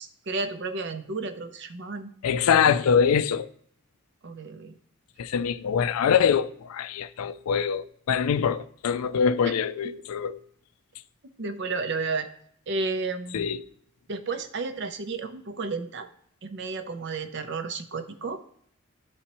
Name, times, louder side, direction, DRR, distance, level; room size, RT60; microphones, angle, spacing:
voice 1, 0.0-2.1 4.2-4.7 9.4-9.5 11.4-12.3 12.7-13.5 14.1-16.1 16.4-18.4, right 3 dB, 55° right, 0.5 m, -32 dB
voice 2, 2.2-3.5 5.2-10.4 13.3-13.6, left 7 dB, 85° left, 0.4 m, -24 dB
11.0 x 4.2 x 3.0 m
head